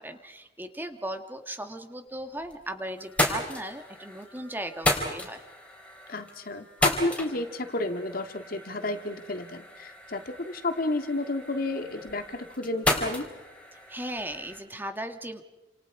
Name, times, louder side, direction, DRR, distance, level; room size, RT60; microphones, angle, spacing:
voice 1, 0.0-5.4 13.9-15.4, right 1 dB, 10° right, 7 dB, 1.7 m, -37 dB
sound 1, 2.1-2.7 3.0-14.6, left 1 dB, 5° left, 4.2 m, -33 dB
voice 2, 6.1-13.3, left 2 dB, 55° left, 7 dB, 2.1 m, -31 dB
30.0 x 27.5 x 4.9 m, 1.1 s
head